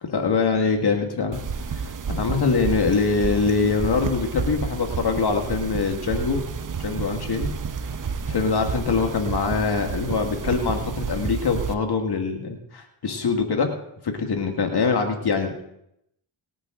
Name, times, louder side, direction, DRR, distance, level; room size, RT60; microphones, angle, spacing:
voice 1, 0.0-1.4 1.7-6.4 6.8-7.5 8.3-13.7 14.0-15.5, left 4 dB, 55° left, 4 dB, 1.9 m, -23 dB
sound 1, 1.3-11.7, right 5 dB, 45° right, 1.0 m, -30 dB
19.5 x 9.1 x 3.8 m, 0.79 s
cardioid pair, 55°, 46 cm